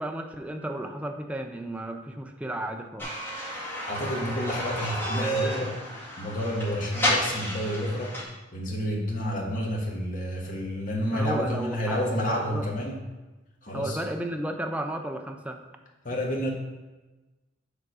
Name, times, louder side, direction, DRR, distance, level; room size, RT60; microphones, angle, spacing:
voice 1, 0.0-3.1 11.1-12.7 13.7-15.6, right 1 dB, 5° right, 4 dB, 0.4 m, -33 dB
sound 1, 3.0-8.2, equal, 10° left, 2.0 m, -31 dB
voice 2, 3.5-5.8 6.2-8.2 8.5-12.9 13.6-14.0 16.0-16.5, equal, 45° left, -2 dB, 1.4 m, -30 dB
6.7 x 3.6 x 6.1 m, 1.2 s
head